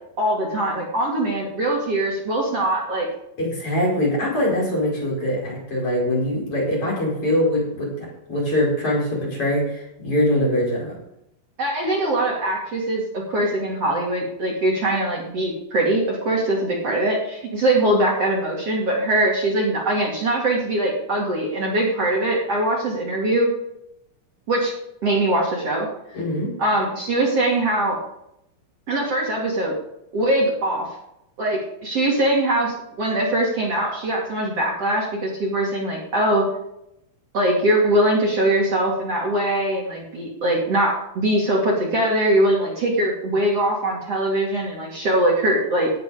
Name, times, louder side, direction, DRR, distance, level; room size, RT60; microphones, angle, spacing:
voice 1, 0.2-3.1 11.6-13.0 13.3-23.5 24.5-24.7 25.0-25.9 26.6-28.0 28.9-29.8 30.1-30.9 31.4-36.4 37.3-45.9, right 1 dB, 45° right, -3 dB, 3.0 m, -22 dB
voice 2, 3.4-11.0 26.1-26.5, left 1 dB, 35° left, -4 dB, 5.9 m, -23 dB
17.5 x 9.5 x 5.0 m, 0.83 s
omnidirectional pair, 4.3 m